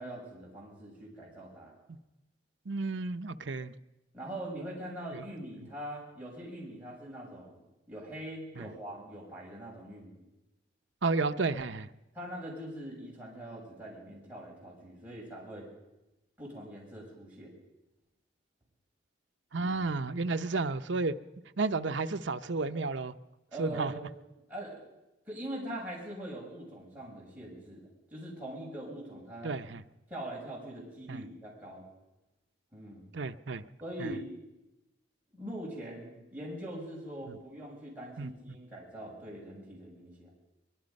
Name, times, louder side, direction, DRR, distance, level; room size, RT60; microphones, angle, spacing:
voice 1, 0.0-1.7 4.1-7.6 7.9-10.2 12.1-15.7 16.4-17.5 19.6-19.8 23.5-24.0 24.5-24.8 25.3-29.5 30.1-31.8 32.7-33.1 33.8-34.2 35.3-40.3, right 1 dB, 10° right, -5 dB, 6.8 m, -42 dB
voice 2, 2.7-3.7 5.1-5.2 8.6-8.7 11.0-11.9 19.5-21.2 21.6-23.1 23.6-23.9 29.4-29.8 31.1-31.2 33.1-33.6 34.0-34.1 37.3-37.4 38.2-38.3, right 3 dB, 65° right, 9 dB, 0.7 m, -32 dB
23.5 x 21.0 x 5.4 m, 0.95 s
head